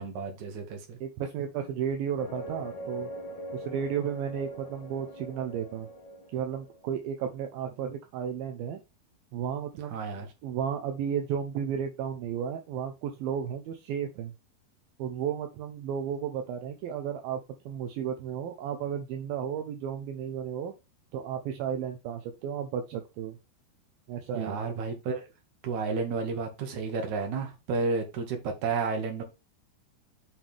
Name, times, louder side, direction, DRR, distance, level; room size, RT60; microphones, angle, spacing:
voice 1, 0.0-1.0 9.9-10.3 24.3-25.2 25.6-29.2, right 4 dB, 55° right, 3.2 m, -31 dB
voice 2, 1.0-3.1 3.5-5.9 6.3-8.8 9.3-10.0 10.4-14.3 15.0-17.4 17.7-20.7 21.1-23.4 24.1-24.6, right 8 dB, 75° right, 2.6 m, -33 dB
sound 1, 2.2-7.0, right 1 dB, 75° left, 1.0 m, -42 dB
7.5 x 5.7 x 3.4 m
omnidirectional pair, 4.5 m